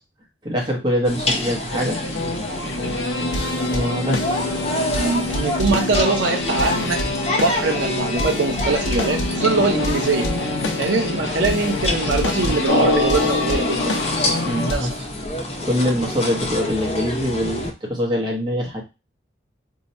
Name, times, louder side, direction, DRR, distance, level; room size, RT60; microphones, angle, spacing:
voice 1, 0.4-2.0 3.7-4.4 14.4-14.9 15.6-18.8, equal, 25° right, -1 dB, 0.8 m, -23 dB
sound 1, 1.0-17.7, left 1 dB, 35° left, 0.6 m, -28 dB
sound 2, 1.7-14.8, left 2 dB, 85° left, 0.7 m, -26 dB
voice 2, 4.9-7.0 7.3-10.3 10.8-14.0 14.6-15.0, right 3 dB, 75° right, 4 dB, 0.5 m, -22 dB
Drum, 12.7-15.2, left 2 dB, 60° left, 1.1 m, -24 dB
2.7 x 2.2 x 4.1 m, 0.27 s
head